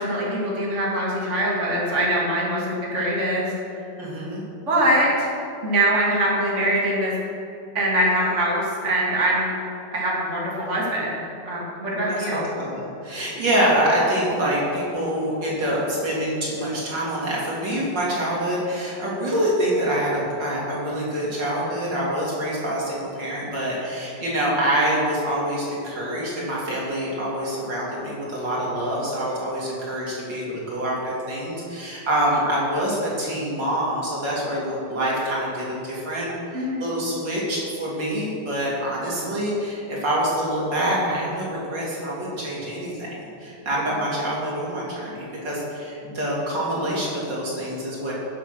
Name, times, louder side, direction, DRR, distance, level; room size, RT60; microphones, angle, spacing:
voice 1, 0.0-3.5 4.7-5.3 5.6-7.1 7.7-9.4 9.9-12.5 36.5-36.8, right 1 dB, 40° right, -5 dB, 2.9 m, -23 dB
voice 2, 4.0-4.4 12.0-42.9 43.4-48.1, right 1 dB, 80° right, -6 dB, 4.2 m, -26 dB
19.5 x 7.7 x 6.3 m, 2.8 s
omnidirectional pair, 1.9 m